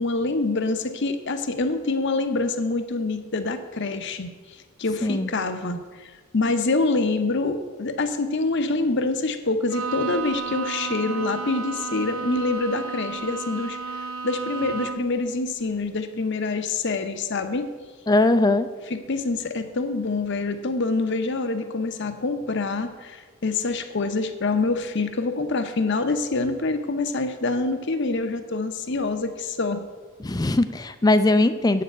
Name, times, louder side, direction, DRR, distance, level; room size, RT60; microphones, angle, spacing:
voice 1, 0.0-4.3 4.8-13.8 14.2-17.7 18.9-29.8, left 3 dB, 55° left, 9 dB, 0.8 m, -26 dB
Bowed string instrument, 9.7-15.2, right 5 dB, 85° right, 0.7 m, -32 dB
voice 2, 18.1-18.7 30.2-31.8, left 2 dB, 20° left, 11 dB, 0.4 m, -20 dB
8.4 x 6.7 x 7.9 m, 1.4 s
head